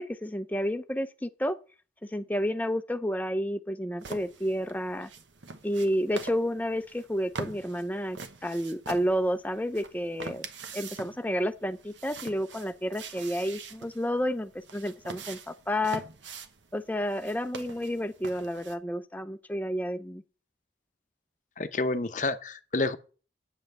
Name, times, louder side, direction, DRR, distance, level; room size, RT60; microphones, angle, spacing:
voice 1, 0.0-1.6 2.1-5.1 5.6-10.5 10.7-16.0 16.7-20.2, equal, 10° left, 0.6 m, -30 dB
sound 1, 4.0-18.8, right 4 dB, 90° right, 1.1 m, -44 dB
voice 2, 21.6-23.0, left 3 dB, 45° left, 0.7 m, -29 dB
8.3 x 5.5 x 7.8 m
head